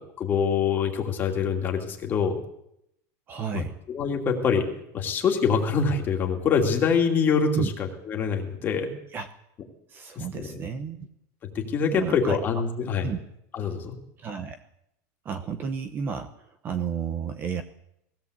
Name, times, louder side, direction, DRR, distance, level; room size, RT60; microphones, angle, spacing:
voice 1, 0.2-2.4 3.5-4.7 4.9-8.9 10.2-10.6 11.5-13.1 13.5-14.0, left 6 dB, 20° left, 2 dB, 2.6 m, -25 dB
voice 2, 3.3-3.8 7.5-7.7 9.1-9.3 9.9-11.1 11.9-12.4 13.0-13.2 14.2-14.6 15.2-17.6, right 6 dB, 20° right, 9 dB, 0.9 m, -31 dB
20.0 x 16.5 x 8.1 m, 0.79 s
supercardioid pair, 180°, 9 cm